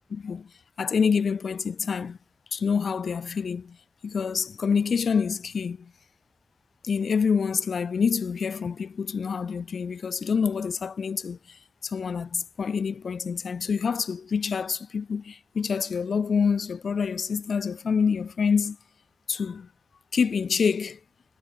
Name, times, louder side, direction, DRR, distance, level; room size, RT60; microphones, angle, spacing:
voice 1, 0.1-0.5 0.8-2.2 2.5-3.8 4.0-5.9 6.8-11.4 11.8-18.8 19.3-19.7 20.1-21.0, left 6 dB, 75° left, 0.4 m, -26 dB
wide cardioid pair, 85°, 0 cm